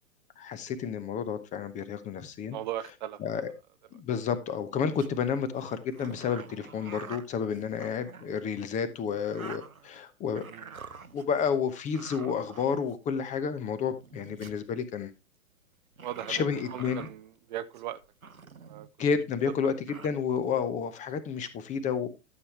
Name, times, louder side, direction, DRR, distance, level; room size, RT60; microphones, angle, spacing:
voice 1, 0.4-2.6 3.2-3.5 3.9-10.4 11.1-15.1 16.3-17.1 19.0-19.7 20.0-22.1, left 6 dB, 20° left, 0.9 m, -30 dB
voice 2, 2.5-3.4 10.4-10.7 16.0-18.0 18.6-18.9, right 12 dB, 35° right, 0.6 m, -38 dB
sound 1, 4.6-5.1 5.7-8.5 9.0-10.0 10.3-11.5 11.9-13.2 13.9-14.6 15.9-17.2 17.7-18.9 19.3-19.4 19.6-20.1, right 5 dB, 85° right, 0.9 m, -47 dB
12.5 x 7.1 x 3.2 m
figure-of-eight pair, 105°, 41 cm